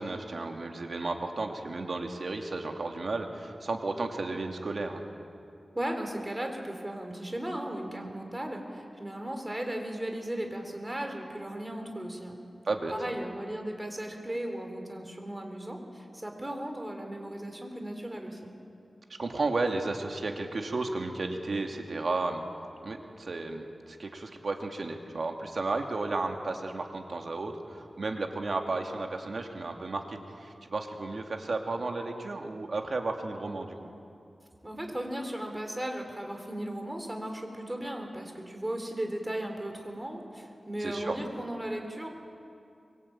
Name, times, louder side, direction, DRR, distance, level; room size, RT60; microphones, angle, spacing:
voice 1, 0.0-5.0 12.7-12.9 19.2-22.4 22.8-33.9 40.8-41.2, right 3 dB, 65° right, 3 dB, 2.6 m, -33 dB
voice 2, 5.7-12.4 12.9-18.6 34.6-42.1, right 1 dB, 15° right, 4 dB, 4.1 m, -36 dB
24.0 x 24.0 x 8.9 m, 2.5 s
wide cardioid pair, 90°, 0 cm